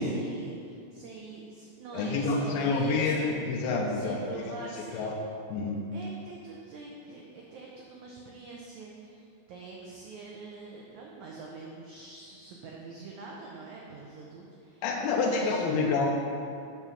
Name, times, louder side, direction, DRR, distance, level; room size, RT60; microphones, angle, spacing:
voice 1, 0.0-3.4 3.9-5.1 5.9-14.8 15.1-15.9, right 3 dB, 80° right, -2 dB, 1.6 m, -45 dB
voice 2, 1.9-5.2 5.5-5.9 14.8-16.1, left 3 dB, 80° left, -1 dB, 2.6 m, -28 dB
7.2 x 6.7 x 5.7 m, 2.5 s
omnidirectional pair, 4.4 m